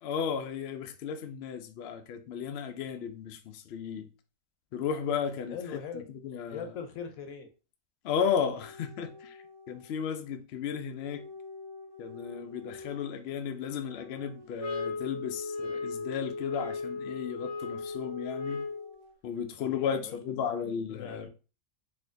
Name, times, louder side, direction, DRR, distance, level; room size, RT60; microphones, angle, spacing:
voice 1, 0.0-4.1 4.7-6.7 8.0-11.3 12.0-18.6 19.2-21.3, left 7 dB, 65° left, 0.6 m, -34 dB
voice 2, 5.5-6.0 6.5-7.5 19.6-20.5 20.9-21.3, left 6 dB, 85° left, 1.2 m, -41 dB
sound 1, 8.2-10.1 11.0-19.1, left 3 dB, 5° right, 0.7 m, -50 dB
sound 2, 14.6-19.0, left 3 dB, 80° right, 1.5 m, -36 dB
4.2 x 2.7 x 2.6 m
omnidirectional pair, 1.4 m